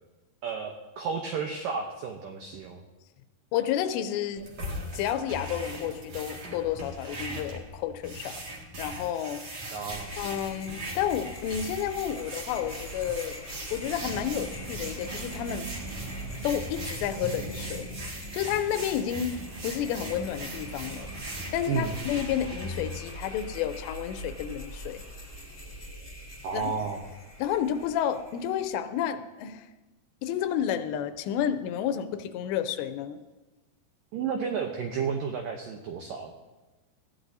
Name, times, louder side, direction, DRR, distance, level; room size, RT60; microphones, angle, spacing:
voice 1, 0.4-2.8 9.7-10.1 21.7-21.9 26.4-27.0 34.1-36.4, right 5 dB, 85° right, 3 dB, 1.9 m, -32 dB
voice 2, 3.5-4.4 4.9-8.4 8.8-9.4 10.2-13.4 13.7-15.7 16.4-17.9 18.3-19.3 19.6-21.1 21.5-25.0 26.5-26.7 27.4-29.7 30.2-33.2, left 10 dB, 80° left, 9 dB, 2.8 m, -30 dB
sound 1, 4.4-23.0, right 1 dB, 45° right, 2.5 m, -40 dB
sound 2, 9.9-28.8, equal, 15° left, 1.9 m, -43 dB
sound 3, 14.0-22.6, right 5 dB, 70° right, 3.2 m, -45 dB
20.0 x 15.0 x 2.7 m, 1.2 s
omnidirectional pair, 5.1 m